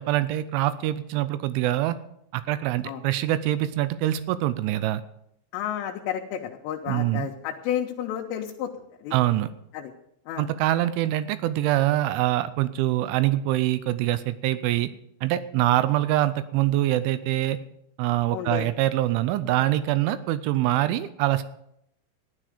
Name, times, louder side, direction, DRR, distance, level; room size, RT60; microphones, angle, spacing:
voice 1, 0.0-2.0 2.3-5.0 6.9-7.3 9.1-9.5 10.4-14.9 15.2-17.6 18.0-21.4, right 14 dB, 85° right, 14 dB, 2.8 m, -24 dB
voice 2, 5.5-8.7 9.0-9.1 9.7-9.9 10.3-10.5 18.3-18.7, left 10 dB, 80° left, 0 dB, 3.4 m, -31 dB
15.0 x 11.5 x 5.0 m, 0.76 s
omnidirectional pair, 5.9 m